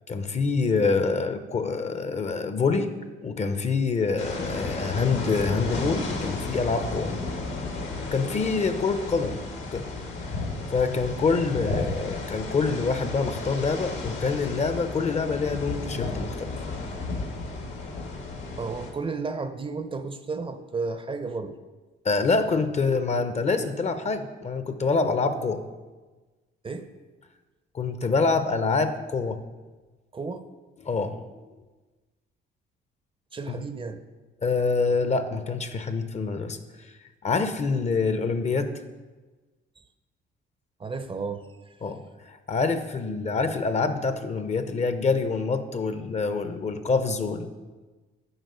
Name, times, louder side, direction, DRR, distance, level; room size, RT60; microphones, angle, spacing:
voice 1, 0.1-2.9 3.2-7.1 8.1-9.4 9.7-9.9 10.7-16.5 22.0-25.6 27.7-29.4 30.8-31.2 33.5-33.6 34.4-36.6 37.2-38.7 41.8-47.5, left 4 dB, 35° left, 10 dB, 0.6 m, -26 dB
sound 1, 4.2-18.9, left 3 dB, 80° left, 1.6 m, -33 dB
voice 2, 18.6-21.6 26.6-26.9 30.1-30.4 33.3-34.0 40.8-41.8, right 4 dB, 25° right, 9 dB, 0.5 m, -33 dB
7.9 x 4.5 x 5.4 m, 1.3 s
cardioid pair, 90°, 20 cm